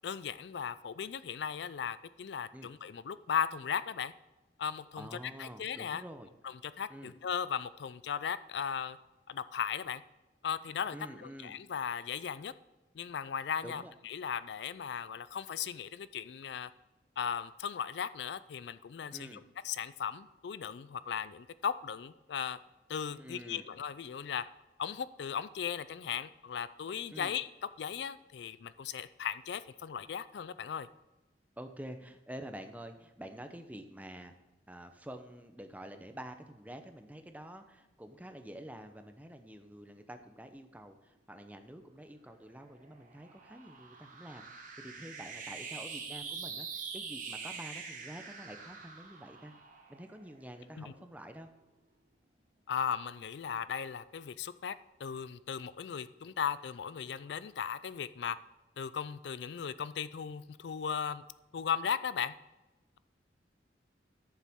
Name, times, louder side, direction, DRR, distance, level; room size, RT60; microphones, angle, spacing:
voice 1, 0.0-4.1 4.6-5.1 5.4-6.0 6.4-9.0 9.3-10.0 10.4-12.5 13.0-16.7 17.2-22.6 22.9-24.4 24.8-27.5 27.8-30.9 50.8-50.9 52.7-58.4 58.8-61.2 61.5-62.3, left 7 dB, 65° left, 15 dB, 0.4 m, -37 dB
voice 2, 5.0-6.3 6.9-7.1 10.9-11.5 13.6-13.9 19.1-19.4 23.1-23.6 27.1-27.3 31.6-34.3 34.7-49.5 49.9-51.5, right 1 dB, 10° right, 7 dB, 0.7 m, -48 dB
sound 1, 42.3-50.9, right 5 dB, 45° right, 1.4 m, -45 dB
13.5 x 7.2 x 3.6 m, 1.0 s
head